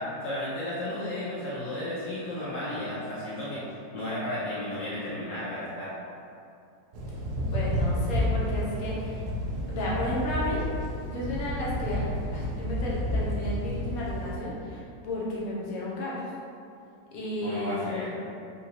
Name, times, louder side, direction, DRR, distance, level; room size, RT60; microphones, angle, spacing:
voice 1, 0.0-3.6 3.9-5.9 17.4-18.2, left 1 dB, 75° left, -11 dB, 1.4 m, -33 dB
Thunder / Rain, 6.9-14.4, equal, 70° right, 1.0 m, -30 dB
voice 2, 7.5-9.3 9.7-10.7 11.0-12.0 12.3-16.3 17.1-18.1, left 1 dB, 60° left, -6 dB, 1.1 m, -33 dB
3.8 x 2.7 x 2.9 m, 2.5 s
omnidirectional pair, 1.9 m